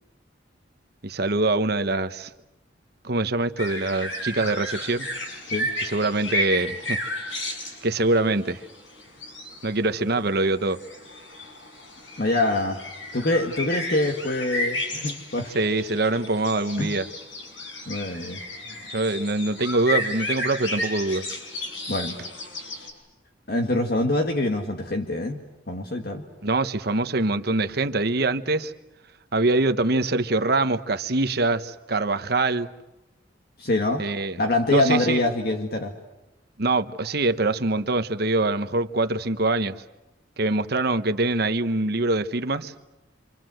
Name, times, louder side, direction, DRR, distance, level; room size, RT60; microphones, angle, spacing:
voice 1, 1.0-2.3 3.0-5.1 5.8-7.0 7.8-8.6 9.6-10.8 15.5-17.1 18.9-21.3 26.4-28.7 29.3-32.7 34.0-34.4 34.7-35.2 36.6-39.8 40.4-42.7, right 2 dB, 55° right, 1.1 m, -24 dB
sound 1, 3.6-22.9, left 1 dB, 85° left, 6.3 m, -33 dB
voice 2, 12.2-12.8 13.1-15.5 16.8-16.9 17.9-18.4 21.9-22.2 23.5-25.4 25.7-26.2 33.6-34.1 34.4-35.9, left 2 dB, 55° left, 2.0 m, -24 dB
27.0 x 26.0 x 7.8 m
head